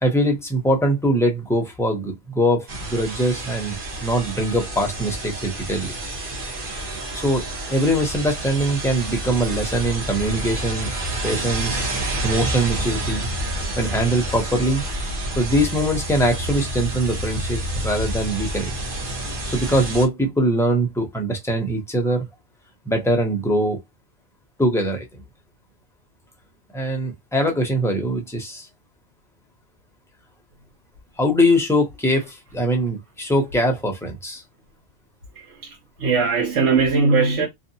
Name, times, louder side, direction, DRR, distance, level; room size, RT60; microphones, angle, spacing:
voice 1, 0.0-5.9 7.1-10.9 11.2-11.9 12.2-13.3 13.8-14.8 15.4-18.7 19.5-22.3 22.9-23.8 24.6-25.0 26.7-28.7 31.2-34.4, equal, 5° left, 0.4 m, -22 dB
sound 1, 2.7-20.1, right 1 dB, 45° right, 1.0 m, -29 dB
voice 2, 35.4-37.5, right 4 dB, 70° right, 1.1 m, -20 dB
2.6 x 2.4 x 2.7 m
omnidirectional pair, 1.3 m